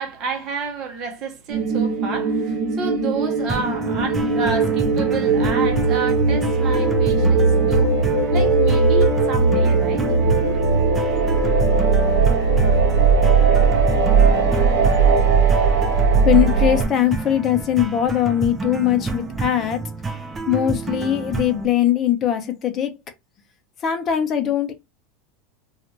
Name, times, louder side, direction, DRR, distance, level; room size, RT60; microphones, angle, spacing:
voice 1, 0.0-8.0 8.3-10.3, right 4 dB, 45° right, 0.9 m, -30 dB
sound 1, 1.5-16.8, right 4 dB, 70° right, 0.9 m, -18 dB
sound 2, 3.5-21.6, right 4 dB, 15° right, 0.6 m, -30 dB
voice 2, 16.2-19.8 20.5-22.9 23.8-24.7, left 11 dB, 35° left, 0.7 m, -20 dB
2.6 x 2.4 x 2.9 m
supercardioid pair, 120°, 0 cm